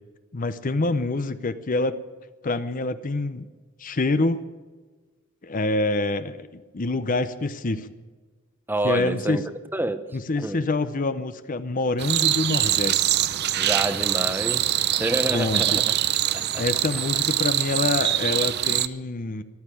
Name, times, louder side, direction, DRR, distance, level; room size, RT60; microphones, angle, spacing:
voice 1, 0.3-2.0 2.4-3.5 3.8-4.5 5.4-7.9 8.8-9.4 10.1-13.3 15.3-15.8 16.6-19.4, left 2 dB, 40° left, 12 dB, 0.7 m, -26 dB
voice 2, 8.7-9.4 9.7-10.6 13.6-15.9 16.3-16.6, right 1 dB, 10° right, 10 dB, 0.9 m, -28 dB
sound 1, 12.0-18.9, right 12 dB, 50° right, 0.6 m, -24 dB
14.5 x 12.0 x 8.4 m, 1.4 s
head